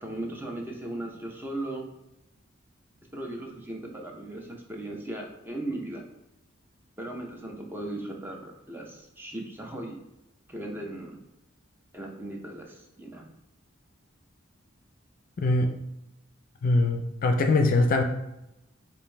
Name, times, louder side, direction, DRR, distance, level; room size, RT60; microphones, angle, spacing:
voice 1, 0.0-1.9 3.1-6.0 7.0-10.0 10.5-11.2 11.9-13.3, right 1 dB, 10° right, 1 dB, 0.6 m, -37 dB
voice 2, 16.6-18.0, left 2 dB, 45° left, 5 dB, 0.4 m, -22 dB
5.0 x 2.6 x 3.2 m, 0.90 s
head